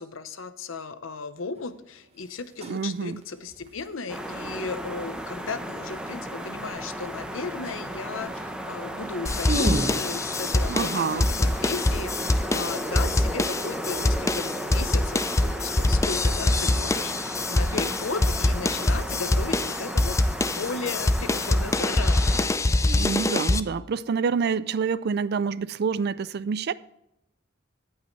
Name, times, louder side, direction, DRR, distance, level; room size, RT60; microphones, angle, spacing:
voice 1, 0.0-20.2 20.5-22.9, left 4 dB, 85° left, 0.8 m, -36 dB
sound 1, 1.6-1.7 2.4-2.9 3.2-3.9 7.2-7.3 7.6-7.9 8.2-8.4 8.8-8.9 9.1-10.0, right 1 dB, 30° right, 1.2 m, -30 dB
voice 2, 2.6-3.2 10.7-11.3 22.8-26.7, right 5 dB, 55° right, 0.4 m, -27 dB
sound 2, 4.1-22.5, equal, 5° right, 0.8 m, -35 dB
sound 3, 9.2-23.6, left 2 dB, 15° left, 0.4 m, -24 dB
17.0 x 5.6 x 3.1 m
head